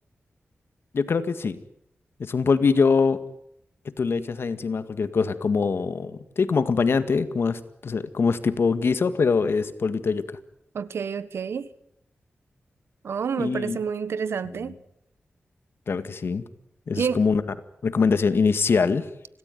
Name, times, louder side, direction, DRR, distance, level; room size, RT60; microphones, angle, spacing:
voice 1, 0.9-1.6 2.2-3.2 4.0-10.3 13.4-13.8 15.9-16.4 16.9-17.4 17.8-19.1, left 5 dB, 70° left, 1.9 m, -23 dB
voice 2, 10.7-11.7 13.0-14.8 16.9-17.2, right 6 dB, 90° right, 1.3 m, -28 dB
26.5 x 18.0 x 9.4 m
wide cardioid pair, 80°, 4 cm